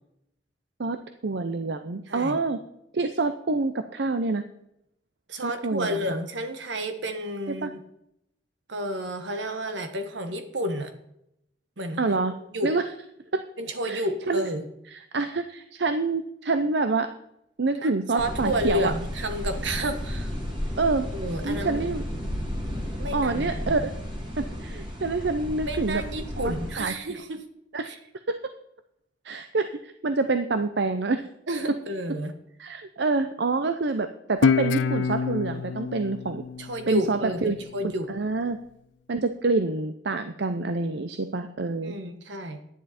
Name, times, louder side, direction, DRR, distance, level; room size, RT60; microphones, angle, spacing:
voice 1, 1.2-2.6 2.9-4.4 5.4-6.1 7.6-7.7 12.0-12.3 12.6-12.8 13.3-13.4 13.8-14.4 14.9-17.1 17.6-18.9 20.8-21.1 21.4-22.0 23.1-23.9 24.4-26.0 26.4-26.9 27.7-27.9 28.3-28.4 29.2-31.2 32.6-36.4 36.9-37.6 37.8-38.6 39.1-42.0, right 3 dB, 65° right, 9 dB, 0.7 m, -27 dB
voice 2, 2.1-2.4 5.3-7.8 8.7-10.9 11.8-12.0 12.5-12.7 13.6-14.7 17.8-20.3 21.1-21.8 23.0-23.9 25.6-27.4 27.8-28.0 31.5-32.3 36.6-38.1 41.8-42.6, equal, 85° right, 8 dB, 1.4 m, -31 dB
sound 1, 18.2-26.8, equal, 25° right, 2.7 m, -33 dB
Guitar, 34.4-37.6, left 6 dB, 85° left, 0.4 m, -26 dB
11.0 x 10.0 x 4.3 m, 0.78 s
head